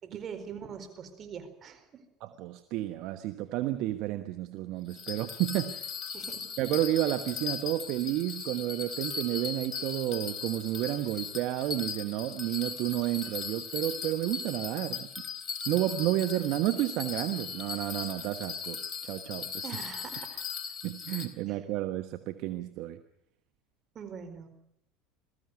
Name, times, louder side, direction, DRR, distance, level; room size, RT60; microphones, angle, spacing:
voice 1, 0.0-2.0 6.1-6.5 19.6-20.4 21.5-21.6 23.9-24.5, right 7 dB, 40° right, 7 dB, 4.6 m, -43 dB
voice 2, 2.2-5.9 6.6-15.1 15.7-19.8 20.8-23.0, right 15 dB, 60° right, 9 dB, 1.2 m, -31 dB
Bell, 4.9-21.3, left 6 dB, 40° left, 3.6 m, -38 dB
21.5 x 14.5 x 9.6 m, 0.78 s
hypercardioid pair, 85°, 0 cm